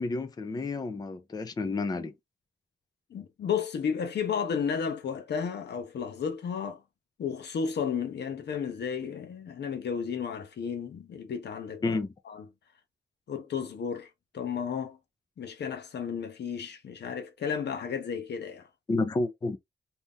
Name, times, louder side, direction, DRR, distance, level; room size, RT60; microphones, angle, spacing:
voice 1, 0.0-2.1 11.8-12.1 18.9-19.6, left 3 dB, 25° left, 0.4 m, -30 dB
voice 2, 3.1-6.8 7.2-12.0 12.3-12.4 13.3-15.0 15.4-18.7, left 6 dB, 85° left, 0.8 m, -33 dB
2.8 x 2.4 x 3.5 m
wide cardioid pair, 150°, 17 cm